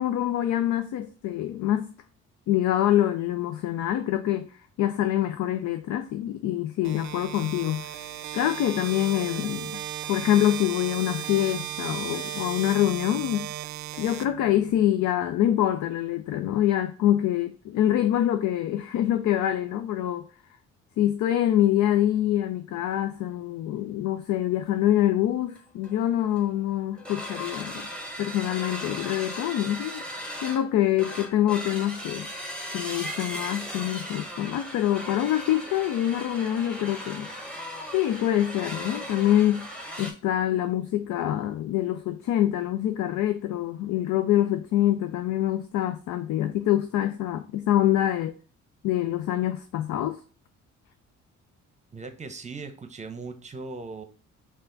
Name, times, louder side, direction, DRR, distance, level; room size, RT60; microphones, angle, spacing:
voice 1, 0.0-1.9 2.5-7.9 8.3-9.8 10.1-13.5 14.0-20.3 21.0-27.9 28.2-30.0 30.4-32.3 32.7-37.3 37.9-39.7 40.0-48.3 48.8-50.2, left 12 dB, 75° left, 0.5 m, -25 dB
sound 1, 6.8-14.9, right 11 dB, 65° right, 0.5 m, -36 dB
sound 2, 25.5-25.6 25.8-26.0 26.4-26.6 26.9-40.1, equal, 5° left, 1.0 m, -37 dB
voice 2, 51.9-54.0, right 4 dB, 25° right, 0.7 m, -38 dB
5.5 x 2.5 x 3.8 m
cardioid pair, 90°, 30 cm